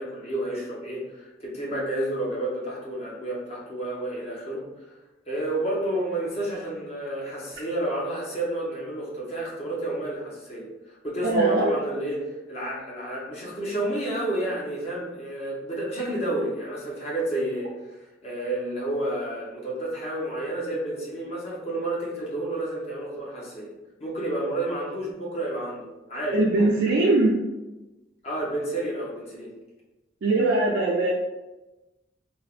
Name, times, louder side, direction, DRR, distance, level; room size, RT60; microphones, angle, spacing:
voice 1, 0.0-4.7 5.3-17.7 18.2-23.7 24.0-26.4 28.2-29.5, right 1 dB, 35° left, -5 dB, 0.7 m, -30 dB
voice 2, 11.2-11.7 26.3-27.4 30.2-31.1, right 2 dB, 85° right, -4 dB, 0.4 m, -21 dB
3.2 x 2.0 x 2.4 m, 1.1 s
head